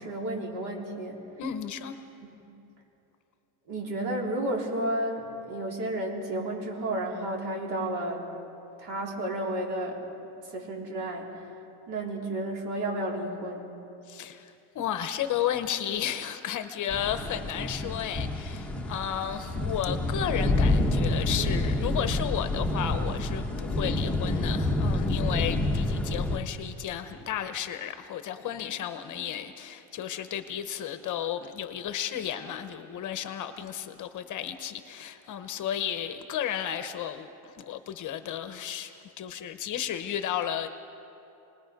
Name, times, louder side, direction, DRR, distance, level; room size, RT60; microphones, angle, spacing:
voice 1, 0.0-1.2 2.3-2.5 3.7-8.2 8.8-11.6 11.9-13.7, right 1 dB, 55° right, 3.9 m, -32 dB
voice 2, 1.4-2.0 14.1-40.7, left 10 dB, 40° left, 0.9 m, -33 dB
sound 1, 16.9-26.4, left 2 dB, 5° left, 1.0 m, -28 dB
28.0 x 20.0 x 5.2 m
cardioid pair, 155°, 45 cm